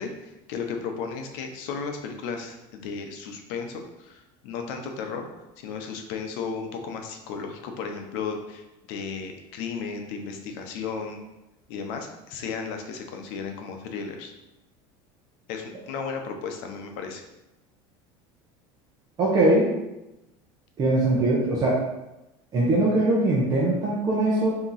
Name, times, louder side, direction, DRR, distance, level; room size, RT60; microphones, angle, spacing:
voice 1, 0.0-5.3 5.6-11.2 11.7-14.3 15.5-17.2, left 5 dB, 70° left, 4 dB, 0.7 m, -34 dB
voice 2, 19.2-19.7 20.8-21.8 22.5-24.6, right 2 dB, 30° right, -5 dB, 0.8 m, -21 dB
3.6 x 2.9 x 4.0 m, 0.95 s
cardioid pair, 140°, 13 cm